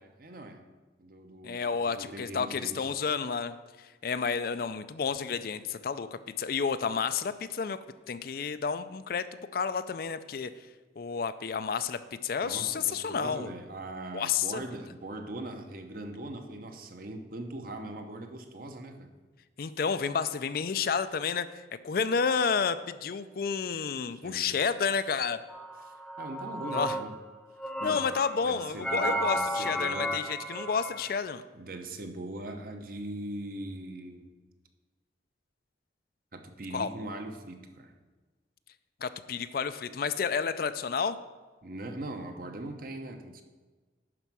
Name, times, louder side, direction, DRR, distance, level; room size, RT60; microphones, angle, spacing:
voice 1, 0.0-0.6 1.0-2.8 12.4-19.1 24.1-24.6 25.8-27.1 27.8-28.1 28.4-30.2 31.5-34.3 36.3-37.9 41.6-43.4, right 1 dB, 50° right, 6 dB, 0.9 m, -41 dB
voice 2, 1.4-7.8 8.1-10.5 11.0-13.5 14.1-14.6 19.6-25.4 26.7-27.0 27.8-31.4 36.7-36.9 39.0-41.2, left 6 dB, 55° left, 12 dB, 0.4 m, -31 dB
sound 1, 25.5-27.2 27.6-31.2, equal, ahead, 0.5 m, -33 dB
11.0 x 4.5 x 6.1 m, 1.3 s
head